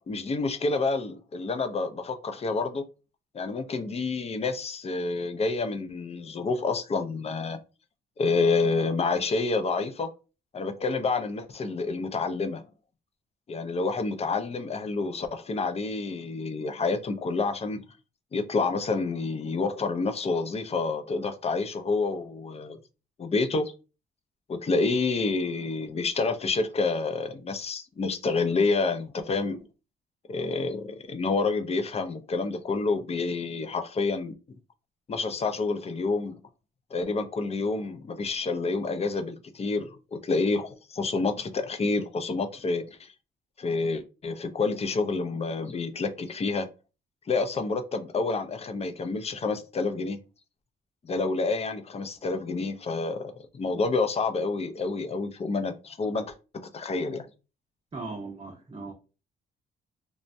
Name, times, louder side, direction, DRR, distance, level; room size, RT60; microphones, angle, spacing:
voice 1, 0.1-2.8 3.3-7.6 8.2-10.1 10.5-12.6 13.5-17.8 18.3-22.8 23.2-23.7 24.5-29.6 30.3-34.3 35.1-36.4 36.9-43.1 43.6-46.7 47.3-50.2 51.0-57.3, left 3 dB, 30° left, 0.5 m, -28 dB
voice 2, 57.9-58.9, right 3 dB, 25° right, 0.7 m, -38 dB
3.2 x 2.1 x 2.6 m
cardioid pair, 90°, 20 cm